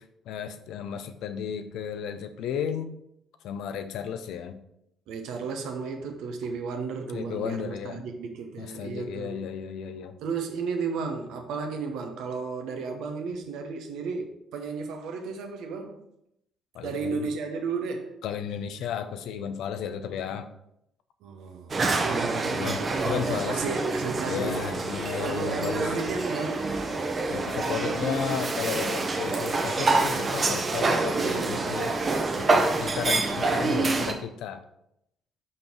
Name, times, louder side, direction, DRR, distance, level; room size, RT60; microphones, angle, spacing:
voice 1, 0.0-2.9 3.4-4.6 7.1-8.0 8.6-10.2 16.7-17.2 18.2-20.5 22.5-23.9 24.3-26.0 27.3-31.9 32.4-34.6, left 8 dB, 65° left, 9 dB, 0.5 m, -34 dB
voice 2, 5.1-9.5 10.2-16.0 16.8-18.2 21.2-24.5 25.2-26.7, right 4 dB, 65° right, 5 dB, 0.9 m, -33 dB
sound 1, 21.7-34.1, right 3 dB, 35° right, 1.0 m, -27 dB
5.5 x 5.3 x 4.5 m, 0.78 s
figure-of-eight pair, 45°, 0 cm